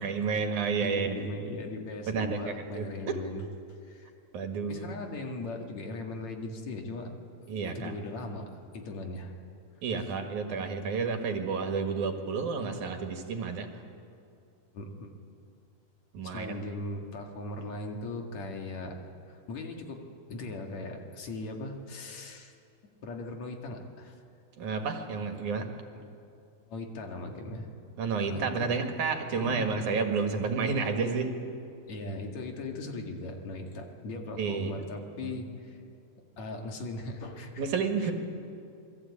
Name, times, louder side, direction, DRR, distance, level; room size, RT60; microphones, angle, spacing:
voice 1, 0.0-1.2 2.1-3.2 4.3-4.9 7.5-7.9 9.8-13.7 16.1-16.6 24.6-25.7 28.0-31.3 34.4-34.7 35.2-35.3 37.6-38.1, right 5 dB, 70° right, 5 dB, 3.2 m, -30 dB
voice 2, 0.8-3.4 3.8-4.1 4.7-7.1 7.7-9.3 10.0-10.1 14.7-15.1 16.2-19.0 19.3-20.0 20.3-22.5 23.0-24.2 26.7-27.7 28.2-28.7 29.3-29.6 31.9-35.8 36.4-37.6 38.0-38.1, left 2 dB, 60° left, 2 dB, 3.2 m, -39 dB
27.5 x 21.0 x 8.6 m, 2.5 s
omnidirectional pair, 3.7 m